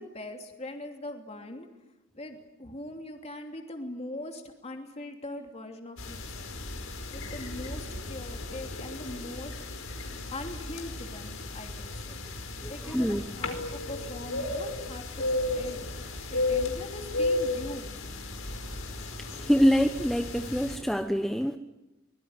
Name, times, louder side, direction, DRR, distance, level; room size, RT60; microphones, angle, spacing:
voice 1, 0.0-1.7 2.1-6.6 7.1-9.6 10.3-15.8 16.3-17.9, left 1 dB, 30° left, 3 dB, 3.0 m, -41 dB
sound 1, 6.0-20.8, left 2 dB, 80° left, 4.9 m, -34 dB
voice 2, 12.6-13.2 19.2-21.6, equal, ahead, 6 dB, 1.0 m, -25 dB
24.5 x 22.0 x 9.7 m, 0.98 s
head